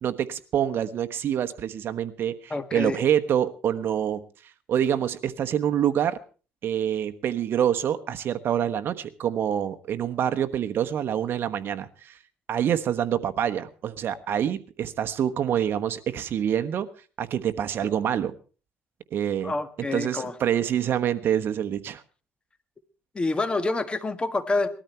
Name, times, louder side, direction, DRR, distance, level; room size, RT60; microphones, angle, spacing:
voice 1, 0.0-4.2 4.7-6.2 6.6-12.2 12.5-16.9 17.2-18.3 19.1-19.5 19.9-22.0, right 9 dB, 55° right, 9 dB, 1.3 m, -26 dB
voice 2, 2.5-3.0 19.4-20.3 23.1-24.7, left 3 dB, 20° left, 10 dB, 1.7 m, -27 dB
20.0 x 13.5 x 4.5 m, 0.37 s
cardioid pair, 110°, 4 cm